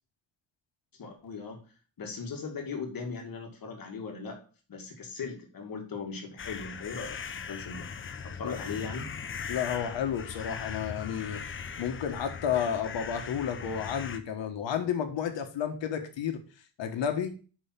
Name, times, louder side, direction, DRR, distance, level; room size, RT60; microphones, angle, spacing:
voice 1, 0.9-1.6 2.0-4.4 4.7-7.9 8.2-9.1, left 5 dB, 50° left, 2 dB, 1.9 m, -39 dB
sound 1, 6.4-14.2, left 6 dB, 30° left, 0.6 m, -39 dB
voice 2, 9.5-11.4 11.8-16.4 16.8-17.3, left 8 dB, 75° left, 6 dB, 1.5 m, -31 dB
5.5 x 5.4 x 5.7 m, 0.37 s
wide cardioid pair, 150°, 44 cm